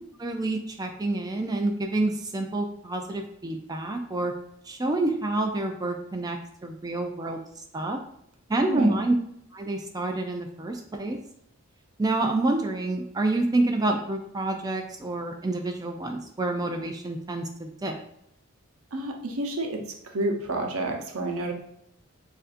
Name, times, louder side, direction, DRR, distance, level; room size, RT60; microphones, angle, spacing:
voice 1, 0.2-4.3 4.7-8.0 8.5-9.1 9.5-11.2 12.0-18.0, right 2 dB, 15° right, 4 dB, 0.3 m, -28 dB
voice 2, 18.9-21.5, right 1 dB, 75° right, 2 dB, 0.8 m, -29 dB
6.6 x 2.6 x 2.5 m, 0.75 s
head